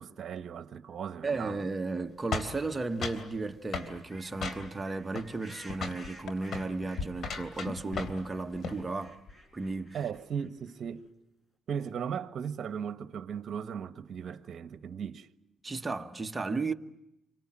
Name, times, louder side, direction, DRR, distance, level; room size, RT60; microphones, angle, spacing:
voice 1, 0.0-1.6 9.9-11.1 11.7-15.3, right 7 dB, 60° right, 1.3 m, -37 dB
voice 2, 1.2-9.2 9.5-10.0 15.6-16.7, right 3 dB, 20° right, 1.2 m, -34 dB
sound 1, 2.3-3.3 3.7-3.9 4.4-4.9 5.1-5.6 5.8-6.1 6.4-6.7 7.2-8.3 8.5-8.8, left 4 dB, 60° left, 3.3 m, -36 dB
sound 2, 2.6-2.8 3.2-7.5 7.8-10.8, equal, 25° left, 4.6 m, -54 dB
sound 3, 5.6-8.4 8.7-9.8 10.0-10.4, left 4 dB, 85° left, 1.8 m, -42 dB
29.5 x 24.5 x 7.5 m
cardioid pair, 90°, 0 cm